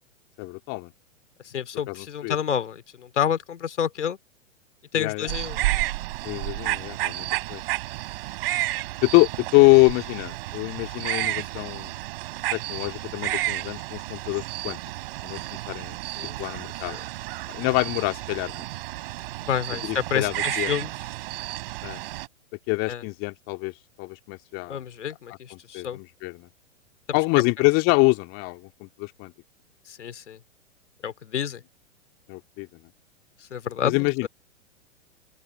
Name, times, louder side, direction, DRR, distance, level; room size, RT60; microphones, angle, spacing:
voice 1, 0.4-0.9 1.9-2.4 4.9-5.3 6.2-7.6 9.0-11.9 12.5-14.8 15.2-15.4 15.7-16.0 16.4-17.0 17.5-18.7 19.8-20.7 21.8-22.0 22.7-24.8 25.3-26.5 27.1-29.3 32.3-32.7 33.8-34.3, left 27 dB, 35° left, 2.1 m, -25 dB
voice 2, 1.5-4.2 4.9-5.6 16.2-16.4 16.9-17.0 19.4-20.9 22.9-23.0 24.7-26.0 29.9-30.4 31.0-31.6 33.5-34.1, left 8 dB, 70° left, 2.7 m, -29 dB
sound 1, 5.3-22.3, right 17 dB, 50° right, 6.3 m, -31 dB
open air
figure-of-eight pair, 110°, 37 cm